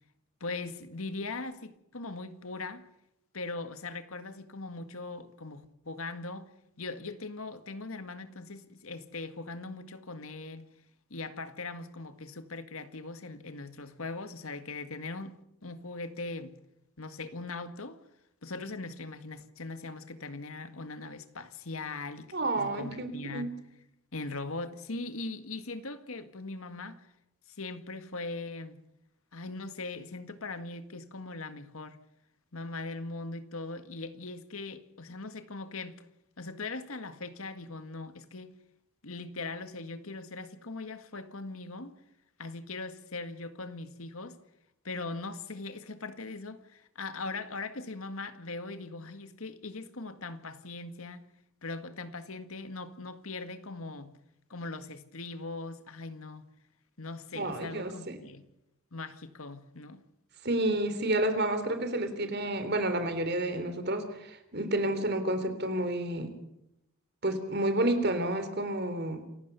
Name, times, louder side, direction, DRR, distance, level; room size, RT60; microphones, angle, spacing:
voice 1, 0.4-2.9 3.3-6.5 6.8-10.6 11.1-15.4 15.6-16.6 17.0-18.0 18.4-23.6 24.1-27.1 27.5-28.8 29.3-32.0 32.5-36.0 36.4-38.5 39.0-41.9 42.4-44.4 44.8-51.3 51.6-54.2 54.5-56.5 57.0-58.4 58.9-60.0, left 3 dB, 75° left, 1.9 m, -40 dB
voice 2, 22.3-23.5 57.3-58.2 60.4-66.3 67.2-69.2, right 1 dB, 50° right, 3.5 m, -30 dB
28.0 x 16.0 x 6.9 m
head